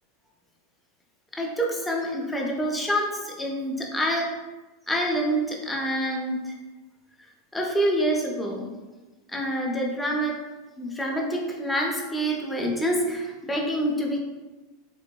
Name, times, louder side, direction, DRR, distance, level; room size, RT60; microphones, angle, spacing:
voice 1, 1.3-4.3 4.9-6.6 7.5-8.7 9.3-10.4 10.8-14.2, equal, 5° left, 0 dB, 0.4 m, -27 dB
3.6 x 3.3 x 2.2 m, 1.2 s
supercardioid pair, 180°, 0 cm